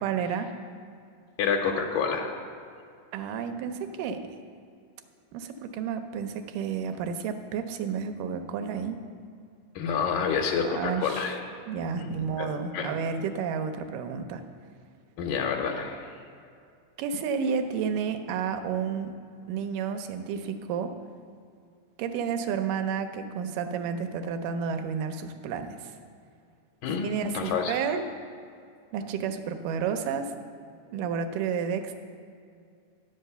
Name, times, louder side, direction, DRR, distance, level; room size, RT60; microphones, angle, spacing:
voice 1, 0.0-0.5 3.1-4.2 5.3-9.0 10.6-11.4 11.7-14.4 17.0-19.2 19.5-20.9 22.0-26.0 26.9-28.0 28.9-30.3 30.9-32.0, right 6 dB, 85° right, 8 dB, 2.2 m, -31 dB
voice 2, 1.4-2.3 9.8-11.4 12.0-12.5 12.7-12.9 15.2-16.1 26.8-27.8, left 6 dB, 90° left, 1 dB, 2.4 m, -28 dB
10.0 x 5.2 x 6.7 m, 2.3 s
omnidirectional pair, 3.7 m